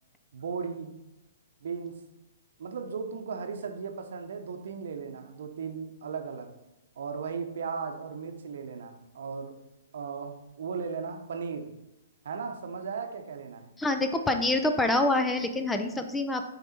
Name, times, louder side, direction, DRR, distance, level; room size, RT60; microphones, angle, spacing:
voice 1, 0.3-1.0 1.6-2.0 2.6-6.5 7.0-9.6 9.9-11.8 12.2-13.7, right 5 dB, 70° right, 6 dB, 0.8 m, -36 dB
voice 2, 13.8-16.4, left 2 dB, 10° left, 7 dB, 0.5 m, -26 dB
6.9 x 4.1 x 4.3 m, 0.97 s
hypercardioid pair, 125°, 0 cm